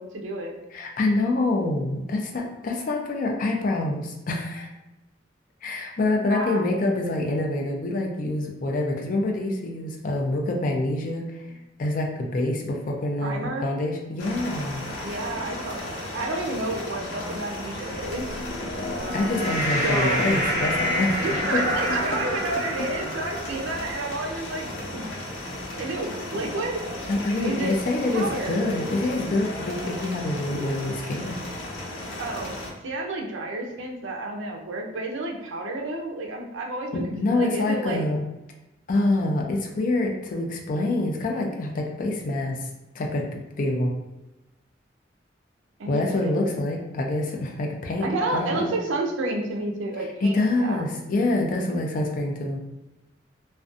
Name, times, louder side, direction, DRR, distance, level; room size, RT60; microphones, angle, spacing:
voice 1, 0.0-0.5 6.3-6.6 13.2-13.7 15.0-18.4 19.8-20.2 21.2-25.3 25.8-26.8 27.4-27.8 28.1-28.6 32.2-32.6 32.8-38.0 45.8-46.4 48.0-50.8, right 2 dB, 90° right, 1 dB, 0.5 m, -30 dB
voice 2, 0.7-4.7 5.6-11.4 11.8-14.9 19.1-21.6 27.1-31.4 36.9-38.2 38.9-42.6 42.9-43.9 45.9-48.7 50.2-52.6, left 2 dB, 45° left, 1 dB, 0.4 m, -26 dB
sound 1, 14.2-32.7, left 1 dB, 85° left, 0.6 m, -35 dB
sound 2, 18.1-24.6, equal, 40° right, 1.0 m, -29 dB
2.5 x 2.2 x 2.4 m, 0.97 s
head